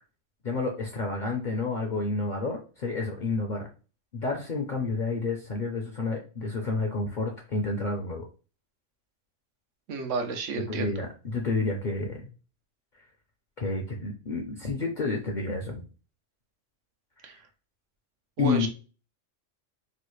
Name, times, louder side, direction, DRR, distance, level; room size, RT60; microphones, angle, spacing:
voice 1, 0.4-3.7 4.1-8.3 10.7-12.3 13.6-15.8 18.4-18.7, left 3 dB, 55° left, 1 dB, 0.5 m, -30 dB
voice 2, 9.9-11.0 17.2-17.4 18.4-18.7, right 4 dB, 80° right, 5 dB, 1.0 m, -31 dB
3.1 x 2.4 x 3.1 m, 0.35 s
omnidirectional pair, 1.3 m